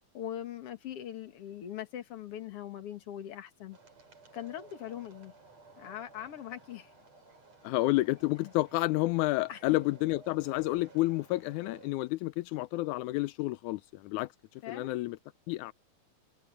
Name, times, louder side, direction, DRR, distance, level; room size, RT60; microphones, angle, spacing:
voice 1, 0.1-3.8 4.3-5.3 5.8-6.9 8.4-8.5 9.5-9.6 14.6-15.0, left 11 dB, 55° left, 2.5 m, -41 dB
sound 1, 3.7-11.9, right 4 dB, 60° right, 6.8 m, -56 dB
voice 2, 7.6-14.3 14.7-15.2 15.5-15.7, left 19 dB, 85° left, 2.0 m, -30 dB
omnidirectional pair, 3.4 m